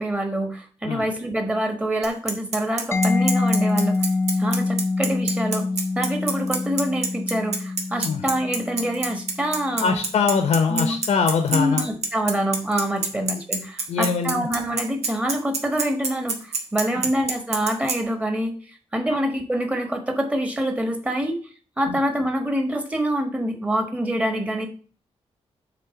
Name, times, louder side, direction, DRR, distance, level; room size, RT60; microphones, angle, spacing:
voice 1, 0.0-4.0 4.4-5.7 5.9-10.0 10.7-11.0 11.5-21.4 21.8-24.7, right 1 dB, 10° right, 4 dB, 1.3 m, -26 dB
Bicycle, 2.0-18.0, right 4 dB, 80° right, 1.6 m, -26 dB
Mallet percussion, 2.9-10.4, left 3 dB, 25° left, 0.4 m, -26 dB
voice 2, 9.8-11.9 13.9-14.5 16.9-17.1 21.9-22.0, left 5 dB, 85° left, 6 dB, 0.9 m, -22 dB
7.5 x 3.6 x 5.8 m, 0.40 s
wide cardioid pair, 165°, 11 cm